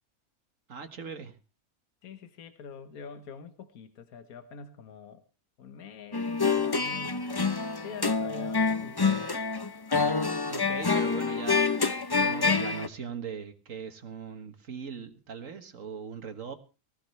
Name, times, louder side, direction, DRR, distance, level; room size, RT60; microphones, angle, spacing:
voice 1, 0.7-1.3 10.5-11.7 12.2-16.6, right 6 dB, 60° right, 8 dB, 1.8 m, -40 dB
voice 2, 2.0-5.2 5.6-7.3 7.8-9.3, left 5 dB, 75° left, 9 dB, 1.6 m, -45 dB
sound 1, 6.1-12.9, left 4 dB, 30° left, 0.4 m, -27 dB
19.5 x 14.5 x 3.3 m, 0.32 s
omnidirectional pair, 1.6 m